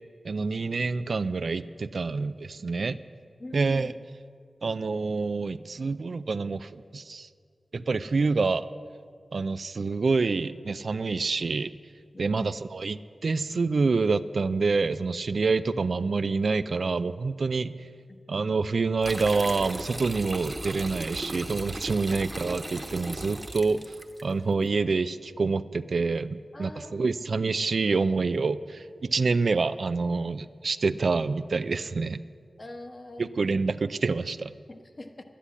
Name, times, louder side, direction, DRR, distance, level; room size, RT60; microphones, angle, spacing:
voice 1, 0.2-3.0 3.5-3.9 4.6-7.3 7.7-8.7 9.3-11.7 12.2-17.9 18.3-32.2 33.2-34.5, right 4 dB, 70° right, 13 dB, 0.4 m, -27 dB
voice 2, 3.4-3.9 12.1-12.5 22.1-22.2 26.5-27.1 32.6-33.3 34.7-35.2, left 1 dB, 40° left, 5 dB, 1.1 m, -42 dB
sound 1, 19.0-24.2, right 1 dB, 25° right, 1.2 m, -37 dB
11.5 x 10.0 x 8.5 m, 2.1 s
wide cardioid pair, 80°, 0 cm